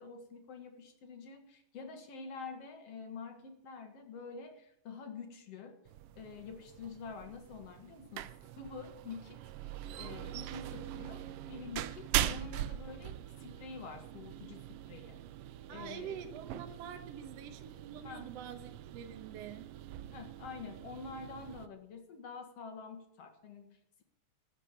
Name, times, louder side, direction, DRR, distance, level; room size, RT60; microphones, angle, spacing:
voice 1, 0.0-5.8 6.2-8.3 8.6-9.4 10.0-11.2 11.5-15.2 15.7-16.2 18.0-18.3 20.1-24.0, left 5 dB, 60° left, 5 dB, 2.8 m, -47 dB
sound 1, 5.9-21.7, right 13 dB, 80° right, 1.3 m, -42 dB
voice 2, 15.7-19.7, right 8 dB, 65° right, 6 dB, 2.1 m, -46 dB
15.0 x 7.2 x 8.5 m, 0.71 s
omnidirectional pair, 3.3 m